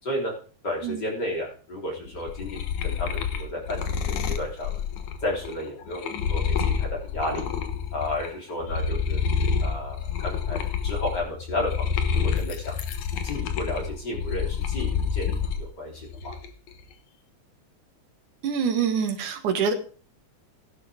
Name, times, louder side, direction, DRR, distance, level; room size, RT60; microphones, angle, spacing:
voice 1, 0.6-4.8 5.2-7.5 7.9-9.2 9.6-11.9 12.1-12.7 13.2-16.4, left 1 dB, 35° left, -2 dB, 3.9 m, -32 dB
sound 1, 2.1-8.3 8.6-15.6 16.0-16.7, left 6 dB, 75° left, 2.5 m, -28 dB
voice 2, 18.4-19.7, right 6 dB, 90° right, 6 dB, 3.1 m, -25 dB
16.0 x 11.0 x 3.6 m, 0.40 s
omnidirectional pair, 3.4 m